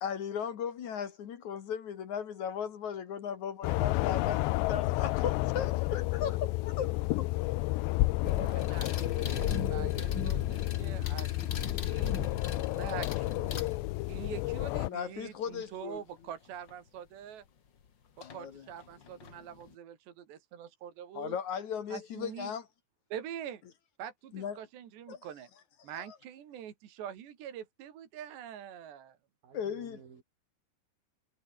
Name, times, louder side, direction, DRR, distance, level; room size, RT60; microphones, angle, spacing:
voice 1, 0.0-6.9 7.2-7.3 13.9-14.1 14.8-16.0 18.2-18.7 21.1-22.7 24.3-24.6 25.1-25.2 25.9-26.0 29.5-30.0, left 7 dB, 55° left, 2.6 m, -37 dB
sound 1, 3.6-14.9, left 19 dB, 85° left, 2.9 m, -31 dB
sound 2, 8.2-14.2 16.7-16.8 18.2-18.4 18.8-19.7, left 7 dB, 70° left, 1.0 m, -37 dB
voice 2, 8.4-12.1 12.7-13.6 14.1-17.4 18.2-21.4 21.9-22.5 23.1-23.6 24.0-25.5 25.8-29.2, right 9 dB, 75° right, 4.7 m, -45 dB
voice 3, 29.4-30.2, right 7 dB, 55° right, 5.6 m, -53 dB
omnidirectional pair, 5.1 m